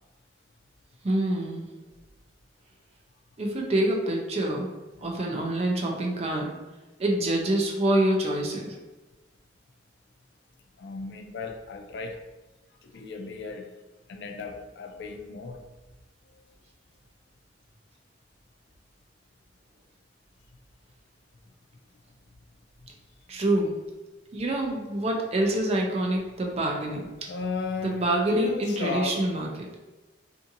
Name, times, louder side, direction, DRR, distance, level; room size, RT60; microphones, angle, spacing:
voice 1, 1.0-1.7 3.4-4.7 5.0-6.5 7.0-8.8 23.3-23.8 24.3-27.3 27.8-29.8, right 1 dB, 35° right, 1 dB, 0.4 m, -26 dB
voice 2, 10.8-12.3 12.8-13.7 14.1-15.6 16.3-16.4 22.8-22.9 23.3-23.4 27.3-29.3, left 4 dB, 70° left, 4 dB, 0.3 m, -35 dB
2.6 x 2.6 x 2.6 m, 1.1 s
head